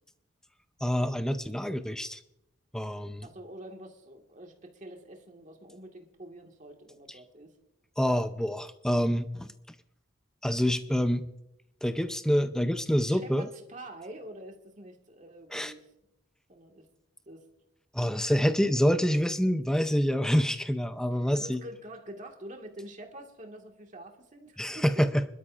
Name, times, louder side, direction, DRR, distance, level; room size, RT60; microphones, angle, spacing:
voice 1, 0.8-2.2 2.7-3.3 8.0-9.5 10.4-11.2 11.8-13.5 15.5-15.7 17.9-21.6 24.6-25.2, equal, 5° left, 10 dB, 0.5 m, -27 dB
voice 2, 3.2-7.5 13.1-15.8 16.5-16.9 17.3-17.5 18.7-19.0 21.1-25.1, right 1 dB, 40° right, 2 dB, 1.8 m, -46 dB
25.5 x 12.5 x 2.5 m, 0.86 s
head